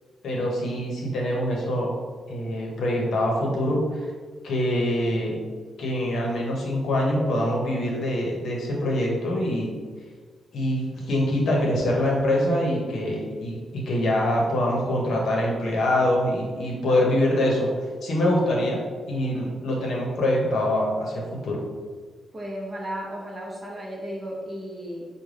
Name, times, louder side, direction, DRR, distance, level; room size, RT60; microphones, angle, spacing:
voice 1, 0.2-1.9 2.3-4.1 4.4-5.4 5.8-9.8 10.5-17.7 18.0-18.8 19.1-21.6, left 1 dB, 65° left, -2 dB, 0.8 m, -24 dB
voice 2, 22.3-25.0, equal, 20° right, -2 dB, 0.7 m, -34 dB
5.0 x 2.2 x 3.2 m, 1.5 s
wide cardioid pair, 175°, 0 cm